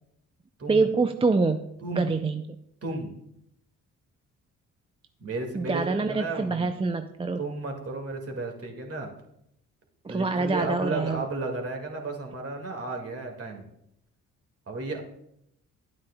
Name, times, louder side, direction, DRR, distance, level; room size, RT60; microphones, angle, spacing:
voice 1, 0.7-1.6 1.9-2.6 5.5-7.4 10.0-11.2, right 3 dB, 15° right, 8 dB, 0.4 m, -25 dB
voice 2, 1.8-2.1 2.8-3.1 5.2-6.7 7.4-9.1 10.1-13.7 14.7-15.0, right 3 dB, 40° right, 2 dB, 2.0 m, -33 dB
9.8 x 8.8 x 2.2 m, 0.78 s
supercardioid pair, 60°, 35 cm